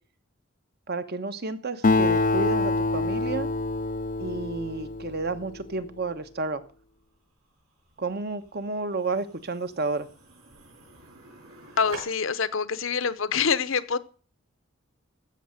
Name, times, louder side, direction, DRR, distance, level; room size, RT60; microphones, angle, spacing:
voice 1, 0.9-3.5 4.2-6.6 8.0-10.1, right 3 dB, 50° right, 1.2 m, -31 dB
Acoustic guitar, 1.8-5.6, left 3 dB, 40° left, 0.5 m, -26 dB
sound 1, 6.6-12.0, right 3 dB, 90° right, 6.2 m, -49 dB
voice 2, 11.8-14.0, left 6 dB, 65° left, 0.9 m, -25 dB
15.5 x 6.7 x 6.5 m
head